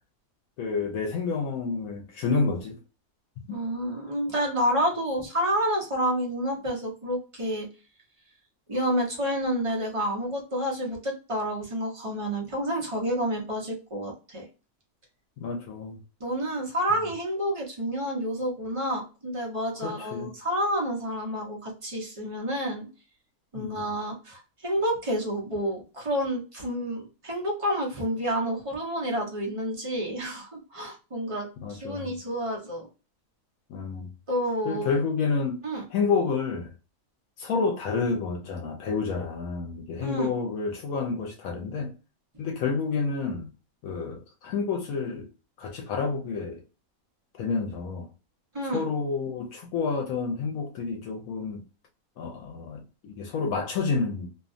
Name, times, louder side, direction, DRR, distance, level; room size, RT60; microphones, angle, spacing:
voice 1, 0.6-2.8 3.5-3.6 15.4-16.0 19.8-20.3 23.5-23.8 31.6-32.1 33.7-34.1 34.7-35.6 35.9-36.7 37.4-41.9 42.4-43.5 43.8-45.3 45.6-46.6 47.4-48.1 48.7-51.6 52.2-54.3, left 4 dB, 75° left, 1.0 m, -29 dB
voice 2, 3.5-7.7 8.7-14.5 16.2-22.9 23.5-32.9 34.3-35.0 35.6-35.8 40.0-40.3 48.5-48.8, equal, 30° right, 0.7 m, -29 dB
2.7 x 2.2 x 2.5 m
omnidirectional pair, 1.5 m